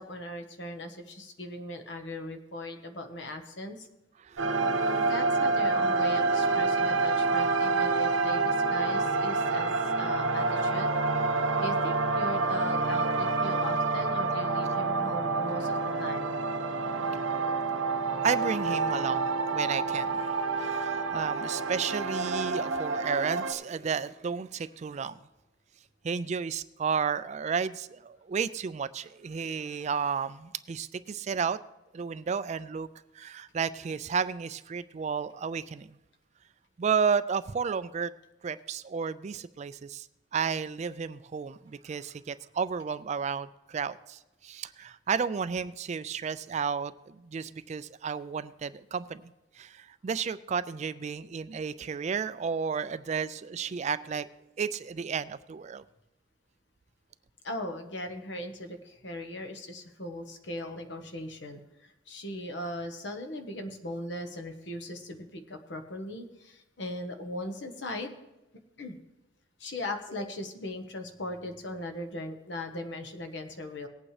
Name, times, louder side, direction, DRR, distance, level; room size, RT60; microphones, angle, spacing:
voice 1, 0.0-3.9 4.7-9.7 10.0-10.9 11.6-16.4 57.4-68.2 68.8-69.0 69.6-73.9, left 1 dB, 60° left, 6 dB, 1.3 m, -39 dB
voice 2, 4.2-5.1 18.2-20.3 20.6-25.2 26.0-31.6 31.9-32.9 33.1-36.0 36.8-38.1 38.4-40.1 40.3-54.3 54.6-55.8, right 6 dB, 35° right, 14 dB, 0.3 m, -32 dB
sound 1, 4.4-23.5, right 3 dB, 80° right, 0.8 m, -28 dB
19.5 x 8.6 x 3.3 m, 0.97 s
head